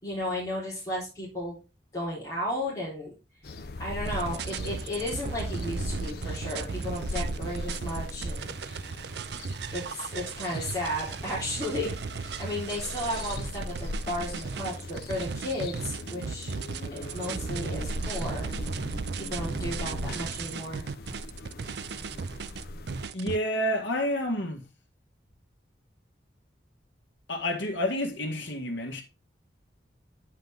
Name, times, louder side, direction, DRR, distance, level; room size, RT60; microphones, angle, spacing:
voice 1, 0.0-1.6 1.9-3.1 3.8-8.5 9.7-16.5 16.9-18.5 19.2-20.9, left 1 dB, 20° left, 3.8 m, -34 dB
sound 1, 3.4-23.1, left 2 dB, 55° left, 0.7 m, -40 dB
sound 2, 4.1-23.4, right 5 dB, 65° right, 0.5 m, -36 dB
voice 2, 23.1-24.6 27.3-29.0, equal, 80° left, 1.8 m, -29 dB
9.0 x 5.7 x 3.6 m
head